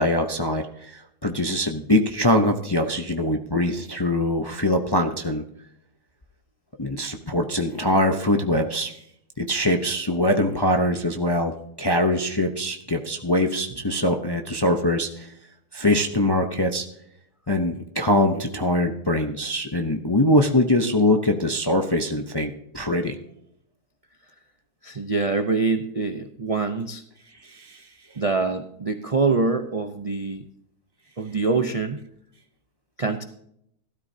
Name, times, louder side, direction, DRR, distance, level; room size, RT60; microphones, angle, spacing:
voice 1, 0.0-5.4 6.8-8.9 9.4-15.3 15.7-16.9 17.5-23.2 27.4-27.9, left 1 dB, 25° left, 4 dB, 0.5 m, -23 dB
voice 2, 24.8-27.0 28.2-30.4 31.2-32.1 33.0-33.2, right 4 dB, 50° right, 6 dB, 0.4 m, -25 dB
17.0 x 12.5 x 2.8 m, 0.74 s
omnidirectional pair, 1.7 m